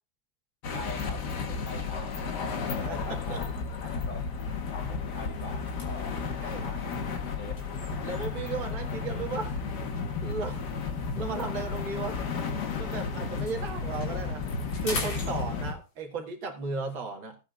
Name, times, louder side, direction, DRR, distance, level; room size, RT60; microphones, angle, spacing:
sound 1, 0.6-15.7, left 5 dB, 60° left, 1.9 m, -33 dB
voice 1, 0.7-4.3 4.8-7.7, left 3 dB, 45° left, 1.9 m, -44 dB
voice 2, 2.8-3.4 6.4-6.6 8.0-9.6 10.2-12.3 12.8-14.4 14.8-17.4, right 4 dB, 75° right, 2.6 m, -35 dB
sound 2, 4.6-8.5 9.3-12.9 13.2-16.0, left 2 dB, 75° left, 3.7 m, -44 dB
17.5 x 8.6 x 2.5 m
omnidirectional pair, 2.1 m